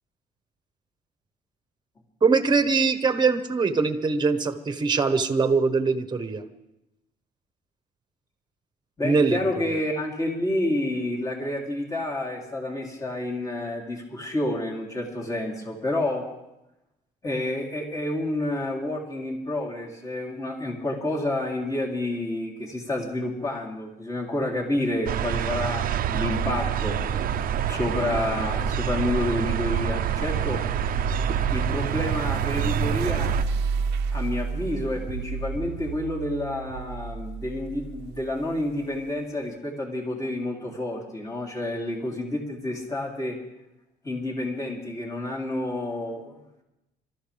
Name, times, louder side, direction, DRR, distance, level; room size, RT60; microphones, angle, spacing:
voice 1, 2.2-6.4 9.0-9.4 9.6-9.8, right 4 dB, 25° right, 8 dB, 1.4 m, -22 dB
voice 2, 9.0-16.3 17.2-27.0 27.7-30.6 31.5-33.4 34.1-43.4 44.0-46.3, left 1 dB, 20° left, -1 dB, 3.6 m, -29 dB
sound 1, 25.1-33.4, right 8 dB, 55° right, 0.8 m, -27 dB
sound 2, 25.8-39.0, right 6 dB, 85° right, 0.9 m, -32 dB
26.0 x 14.0 x 3.6 m, 0.91 s
cardioid pair, 110°, 17 cm